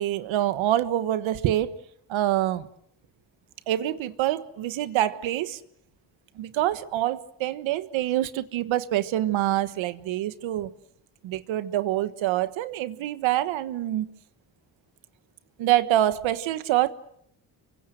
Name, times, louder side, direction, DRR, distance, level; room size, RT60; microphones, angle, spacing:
voice 1, 0.0-1.7 2.1-2.7 3.7-5.6 6.4-10.7 11.2-14.1 15.6-16.9, right 13 dB, 80° right, 1.4 m, -26 dB
28.5 x 24.5 x 6.4 m
supercardioid pair, 70°, 46 cm